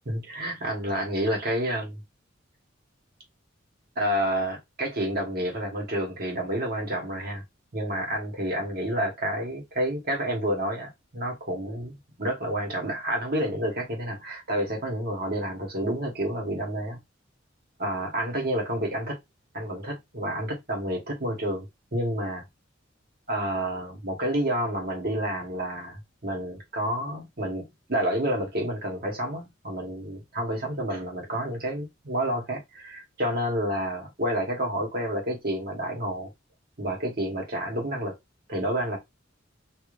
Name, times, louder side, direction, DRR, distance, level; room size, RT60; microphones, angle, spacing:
voice 1, 0.1-2.0 3.9-7.4 7.7-17.0 17.8-19.2 19.5-22.5 23.3-36.3 36.8-38.1 38.5-39.0, right 1 dB, 50° right, 1.4 m, -29 dB
3.2 x 2.7 x 2.5 m
head